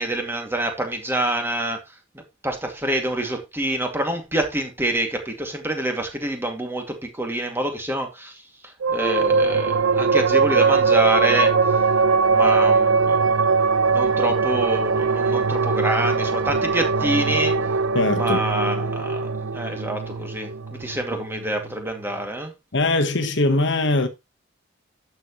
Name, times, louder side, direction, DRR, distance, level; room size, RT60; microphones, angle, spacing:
voice 1, 0.0-1.9 2.4-11.5 12.3-13.4 13.9-17.6 18.1-22.5, right 1 dB, 10° right, 2.3 m, -27 dB
sound 1, 8.8-21.7, right 4 dB, 85° right, 0.6 m, -21 dB
voice 2, 17.9-18.4 22.7-24.1, left 2 dB, 65° left, 1.3 m, -21 dB
11.5 x 7.2 x 3.1 m
head